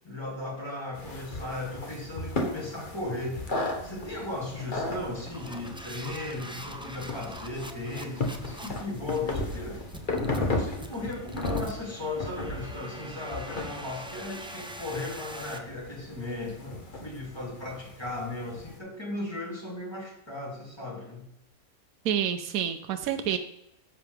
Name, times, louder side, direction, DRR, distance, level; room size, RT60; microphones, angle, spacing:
voice 1, 0.0-3.5 3.8-21.2, left 2 dB, 20° left, -3 dB, 2.8 m, -36 dB
sound 1, 0.9-18.8, left 2 dB, 35° left, 1.4 m, -36 dB
sound 2, 1.8-2.0 2.4-2.6 3.1-3.5 4.0-4.2 4.9-15.6, right 1 dB, 5° right, 0.5 m, -44 dB
voice 2, 22.0-23.4, right 9 dB, 85° right, 7 dB, 1.1 m, -28 dB
10.5 x 7.4 x 3.5 m, 0.84 s
omnidirectional pair, 1.5 m